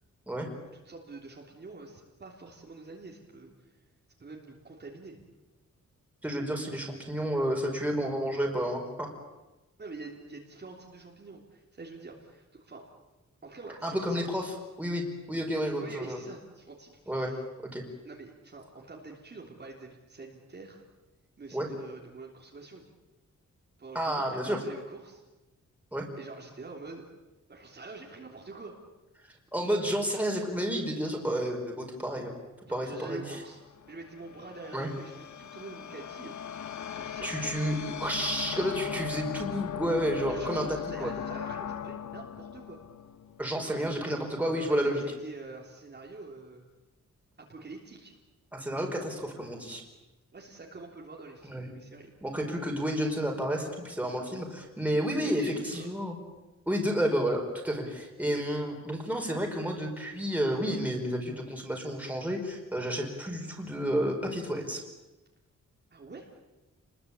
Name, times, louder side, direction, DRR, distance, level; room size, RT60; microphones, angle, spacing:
voice 1, 0.7-3.7 4.2-5.2 9.8-12.9 13.4-14.3 15.8-17.4 18.0-20.8 21.4-22.8 23.8-25.2 26.2-27.0 27.5-28.8 32.7-33.6 33.9-36.4 36.9-38.0 40.3-42.8 43.6-43.7 44.5-46.6 47.4-48.1 50.3-52.1 55.1-55.9 65.9-66.3, right 3 dB, 35° right, -1 dB, 3.5 m, -45 dB
voice 2, 6.2-9.1 13.8-16.2 17.1-17.3 17.7-17.8 21.5-21.7 23.9-24.6 25.9-26.0 29.5-32.3 32.7-33.2 34.7-34.9 37.2-40.7 41.0-41.1 43.4-45.0 48.5-49.8 51.4-51.7 52.2-56.2 56.7-64.8, equal, 5° right, 1 dB, 5.0 m, -31 dB
sound 1, 33.6-43.9, left 9 dB, 75° left, 1.0 m, -39 dB
29.5 x 21.5 x 8.5 m, 1.1 s
wide cardioid pair, 155°, 30 cm